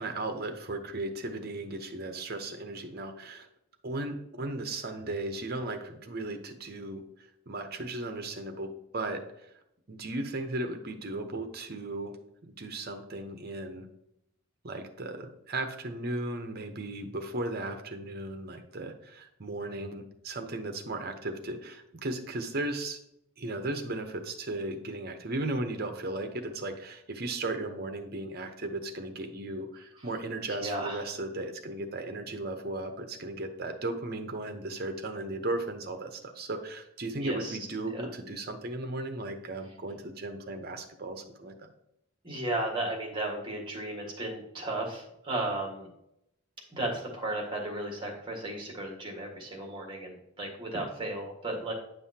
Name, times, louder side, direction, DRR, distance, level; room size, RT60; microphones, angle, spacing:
voice 1, 0.0-3.5 3.8-9.5 9.9-12.2 12.4-13.9 14.6-23.0 23.4-41.7, right 2 dB, 45° right, 7 dB, 0.8 m, -36 dB
voice 2, 30.5-31.1 37.2-37.6 37.9-38.1 42.2-45.9 46.7-51.7, right 2 dB, 20° right, 1 dB, 1.6 m, -34 dB
9.5 x 5.5 x 2.8 m, 0.79 s
head